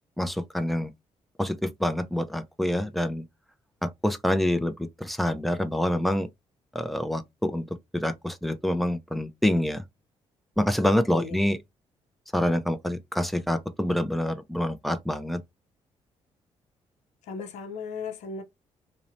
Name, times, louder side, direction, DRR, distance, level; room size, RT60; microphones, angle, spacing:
voice 1, 0.2-0.9 1.4-3.2 3.8-4.7 5.0-6.3 6.7-7.7 7.9-9.8 10.6-11.6 12.3-15.4, left 1 dB, ahead, 0.4 m, -26 dB
voice 2, 17.3-18.4, left 5 dB, 90° left, 0.6 m, -36 dB
2.8 x 2.1 x 2.5 m
cardioid pair, 85°, 12 cm